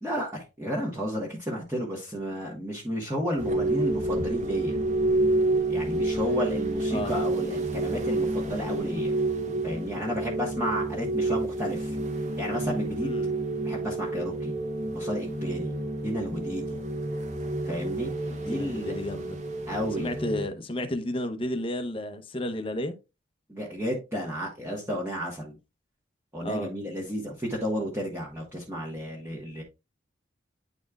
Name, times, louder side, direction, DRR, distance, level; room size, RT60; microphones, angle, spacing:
voice 1, 0.0-4.8 5.7-9.1 9.6-11.9 12.4-13.1 13.6-14.5 14.9-15.7 16.0-16.8 17.6-18.1 18.5-18.9 19.7-20.1 23.5-25.5 26.3-29.6, equal, 15° right, 1.3 m, -32 dB
sound 1, 3.4-20.5, right 2 dB, 35° right, 0.8 m, -29 dB
voice 2, 13.0-13.3 18.3-19.4 20.0-22.9 26.4-26.7, left 1 dB, 25° left, 0.7 m, -32 dB
9.7 x 4.2 x 2.4 m
head